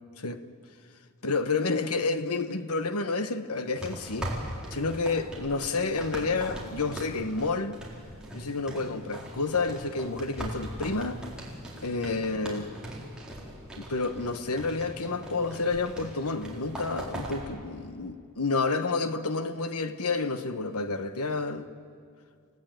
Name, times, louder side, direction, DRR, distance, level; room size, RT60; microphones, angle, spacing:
voice 1, 1.2-4.4 4.7-7.8 8.3-11.2 11.8-12.7 13.8-21.7, left 3 dB, 80° left, 1.2 m, -30 dB
sound 1, 3.8-17.4, right 1 dB, 5° right, 4.1 m, -40 dB
28.5 x 17.0 x 9.2 m
head